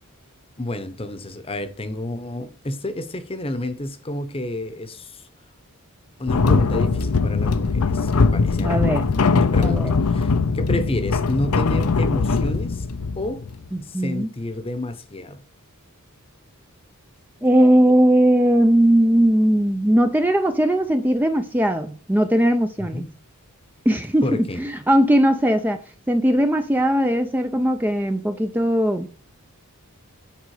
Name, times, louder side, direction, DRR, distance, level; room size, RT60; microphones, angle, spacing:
voice 1, 0.6-5.3 6.2-8.8 9.2-12.9 13.2-13.5 13.9-15.4 22.8-23.1 24.2-24.6, left 1 dB, 25° left, 0.8 m, -30 dB
sound 1, 6.3-13.7, left 4 dB, 85° left, 0.6 m, -21 dB
voice 2, 8.6-9.1 9.6-9.9 13.7-14.3 17.4-23.1 23.9-25.8 26.1-29.1, equal, 10° right, 0.4 m, -19 dB
9.2 x 5.1 x 4.8 m
head